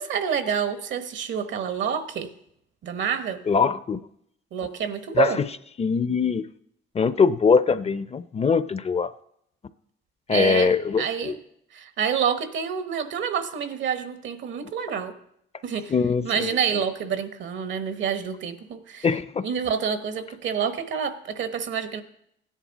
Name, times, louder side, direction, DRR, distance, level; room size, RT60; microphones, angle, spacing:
voice 1, 0.0-2.3 2.8-3.4 4.5-5.4 10.3-11.4 11.7-15.1 15.6-15.9 16.2-19.1 19.4-22.0, right 7 dB, 70° right, 10 dB, 1.1 m, -28 dB
voice 2, 3.5-4.0 5.2-5.3 5.8-6.5 6.9-9.1 10.3-11.4 15.9-16.5 19.0-19.5, left 5 dB, 30° left, 15 dB, 0.5 m, -22 dB
16.0 x 10.0 x 4.1 m, 0.74 s
cardioid pair, 90°, 20 cm